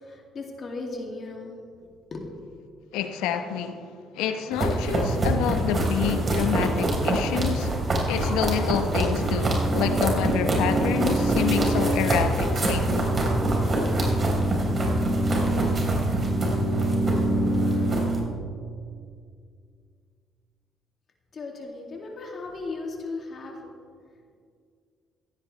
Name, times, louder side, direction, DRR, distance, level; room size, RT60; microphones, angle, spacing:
voice 1, 0.1-1.6 2.1-2.2 21.3-23.6, left 3 dB, 50° left, 2.3 m, -36 dB
voice 2, 2.9-3.8 4.1-7.7 8.1-13.1, left 8 dB, 85° left, 0.9 m, -28 dB
sound 1, 4.5-18.2, right 1 dB, 40° right, 4.0 m, -24 dB
16.0 x 15.0 x 3.3 m
supercardioid pair, 65°, 0 cm